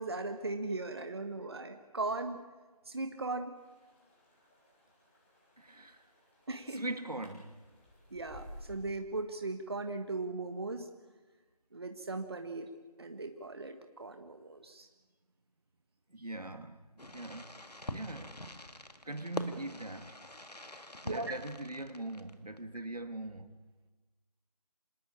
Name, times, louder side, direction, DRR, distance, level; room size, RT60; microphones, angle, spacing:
voice 1, 0.0-2.4 2.8-3.5 6.5-6.8 8.1-10.9 11.7-12.7 13.0-14.9 21.0-21.3, right 3 dB, 40° right, 1.5 m, -38 dB
sound 1, 3.6-8.8, equal, 20° left, 6.8 m, -55 dB
voice 2, 5.6-6.0 6.7-7.6 16.1-16.8 17.1-17.6 17.9-18.3 19.0-20.2 21.0-23.5, right 2 dB, 75° right, 2.4 m, -41 dB
Fireworks, 17.0-22.6, left 1 dB, 85° left, 2.2 m, -45 dB
27.0 x 18.5 x 8.8 m
figure-of-eight pair, 165°, 20 cm